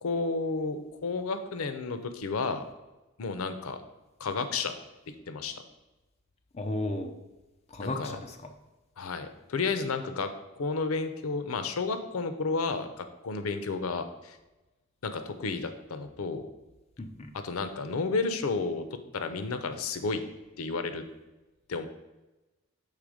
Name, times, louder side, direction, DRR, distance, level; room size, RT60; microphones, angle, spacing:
voice 1, 0.0-2.6 3.2-3.8 4.2-4.7 5.3-5.6 7.8-8.2 9.0-10.3 10.6-14.4 15.0-16.5 17.4-18.8 19.1-20.2 20.6-21.0 21.7-21.9, left 4 dB, 85° left, 9 dB, 0.6 m, -31 dB
voice 2, 6.5-7.1 7.7-8.5 17.0-17.3, left 2 dB, 30° left, 4 dB, 0.5 m, -34 dB
6.6 x 3.4 x 4.9 m, 1.1 s
head